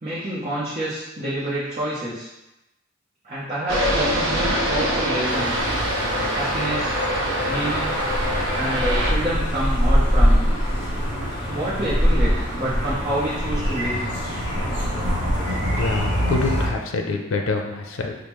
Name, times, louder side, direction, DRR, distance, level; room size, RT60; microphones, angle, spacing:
voice 1, 0.0-2.3 3.2-5.6 6.3-7.0 7.5-7.9 8.5-10.4 11.5-12.3 12.6-14.0, right 1 dB, 35° right, -9 dB, 0.7 m, -28 dB
sound 1, 3.7-9.1, equal, 80° right, 0.7 m, -24 dB
sound 2, 5.2-16.7, equal, 20° left, 1.2 m, -23 dB
voice 2, 15.4-18.2, left 3 dB, 80° left, 3 dB, 0.5 m, -26 dB
5.1 x 2.1 x 3.0 m, 0.95 s
head